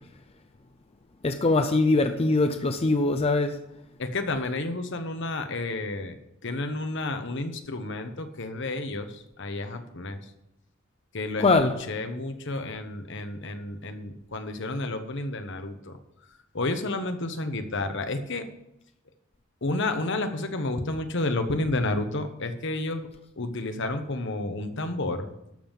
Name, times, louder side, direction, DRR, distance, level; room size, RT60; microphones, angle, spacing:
voice 1, 1.2-3.6 11.4-11.7, left 3 dB, 30° left, 0.6 m, -22 dB
voice 2, 4.0-6.2 6.4-10.2 11.1-16.0 16.5-18.5 19.6-23.1 23.4-25.3, left 2 dB, 65° left, 1.2 m, -31 dB
12.5 x 5.5 x 7.3 m
head